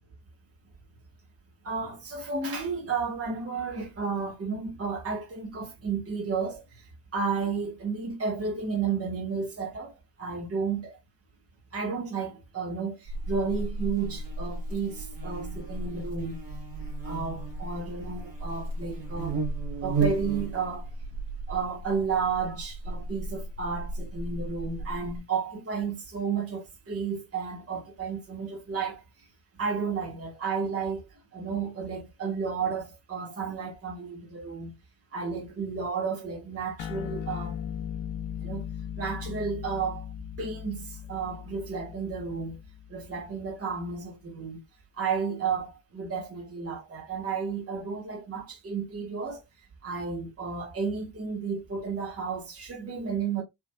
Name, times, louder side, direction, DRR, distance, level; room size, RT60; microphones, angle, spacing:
voice 1, 1.6-11.0 11.7-16.4 17.0-19.4 19.8-20.9 21.5-29.2 29.6-34.7 35.1-37.6 38.4-38.6 39.0-40.1 40.4-42.6 42.9-44.6 45.0-49.4 49.8-53.4, right 5 dB, 30° right, 1.6 m, -32 dB
Buzz, 13.1-25.2, right 3 dB, 50° right, 1.6 m, -34 dB
sound 1, 36.8-43.6, left 9 dB, 85° left, 0.6 m, -38 dB
4.7 x 3.0 x 2.3 m
wide cardioid pair, 165°, 44 cm